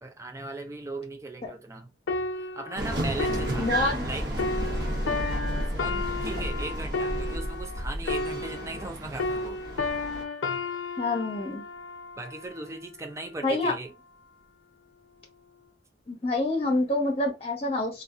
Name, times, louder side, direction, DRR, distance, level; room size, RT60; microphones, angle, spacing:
voice 1, 0.0-1.9 2.4-3.7 4.0-4.3 5.7-9.6 12.2-13.9, right 2 dB, 15° right, 0.4 m, -38 dB
sound 1, 2.1-8.9 9.2-12.8 13.4-13.6, left 3 dB, 90° left, 0.5 m, -33 dB
sound 2, 2.8-10.2, right 1 dB, 60° right, 0.8 m, -32 dB
voice 2, 3.6-4.1 11.0-11.6 13.4-13.7 16.1-18.0, left 2 dB, 30° left, 0.8 m, -27 dB
2.6 x 2.3 x 2.4 m
head